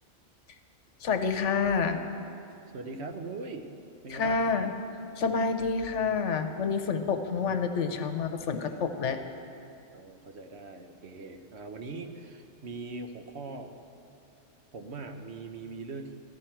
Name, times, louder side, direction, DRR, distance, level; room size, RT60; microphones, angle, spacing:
voice 1, 1.0-2.0 4.1-4.7 5.2-9.2, left 5 dB, 70° left, 7 dB, 1.1 m, -28 dB
voice 2, 2.7-3.7 4.0-4.6 7.2-7.3 8.4-8.8 9.9-13.7 14.7-16.1, right 3 dB, 60° right, 5 dB, 1.1 m, -41 dB
14.5 x 13.0 x 4.5 m, 2.6 s
omnidirectional pair, 1.3 m